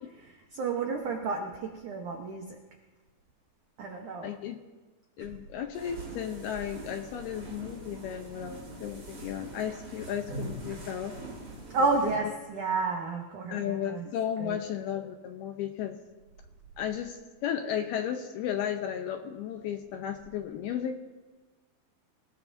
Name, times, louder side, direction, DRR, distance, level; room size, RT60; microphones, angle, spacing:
voice 1, 0.1-2.6 3.8-4.3 5.2-5.3 11.7-14.1 14.4-14.6, right 4 dB, 80° right, 2 dB, 1.7 m, -31 dB
voice 2, 4.2-4.6 5.2-11.2 13.5-16.0 16.8-21.0, left 9 dB, 75° left, 5 dB, 2.4 m, -34 dB
sound 1, 5.7-12.2, right 2 dB, 25° right, 2.9 m, -43 dB
27.5 x 17.5 x 2.7 m, 1.3 s
omnidirectional pair, 5.3 m